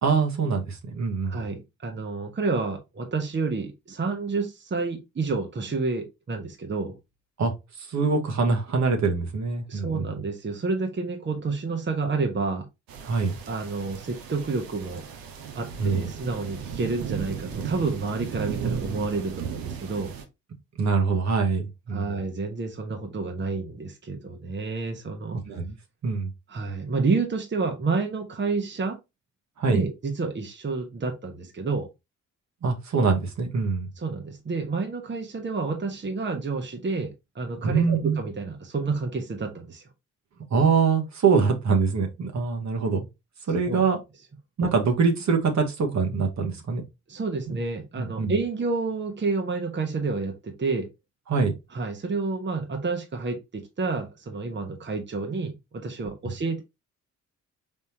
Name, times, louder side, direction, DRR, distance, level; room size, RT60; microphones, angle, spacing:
voice 1, 0.0-1.4 7.4-10.2 13.0-13.4 15.8-16.1 20.8-22.1 25.5-25.7 26.0-26.3 29.6-29.8 32.6-33.9 37.6-38.2 40.5-43.0 43.5-44.0 44.6-46.8 47.5-47.6 48.0-48.3 51.3-51.5, right 5 dB, 50° right, 1.2 m, -24 dB
voice 2, 1.2-7.0 9.7-12.7 13.5-15.2 15.6-20.1 21.9-25.4 26.5-29.0 29.7-31.9 34.0-39.8 43.7-43.8 47.1-50.9 51.7-56.6, right 4 dB, 30° right, 1.1 m, -29 dB
sound 1, 12.9-20.2, right 7 dB, 75° right, 0.9 m, -35 dB
4.3 x 3.6 x 2.8 m
hypercardioid pair, 45°, 35 cm